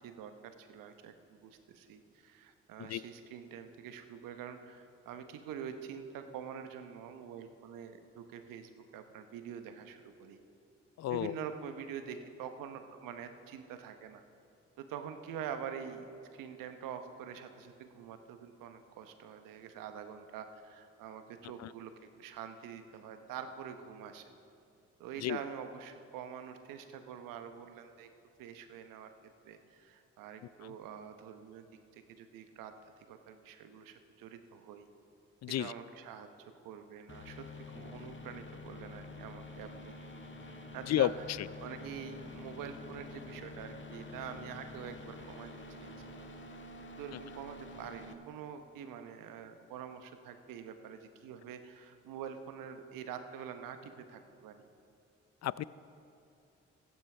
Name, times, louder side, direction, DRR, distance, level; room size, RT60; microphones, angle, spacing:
voice 1, 0.0-10.4 11.1-14.2 14.8-24.2 25.0-28.1 28.4-29.1 29.4-31.7 31.9-34.9 35.6-39.9 40.7-41.1 41.6-45.5 45.8-46.2 47.0-54.7, right 8 dB, 80° right, 8 dB, 0.9 m, -46 dB
voice 2, 11.0-11.3 21.6-21.7 25.2-25.4 30.6-30.7 35.4-35.7 40.9-41.1 41.4-41.5 55.4-55.6, left 14 dB, 55° left, 19 dB, 0.5 m, -32 dB
sound 1, 37.1-48.1, left 2 dB, 35° left, 1.6 m, -48 dB
15.5 x 15.0 x 3.4 m, 2.5 s
hypercardioid pair, 40°, 33 cm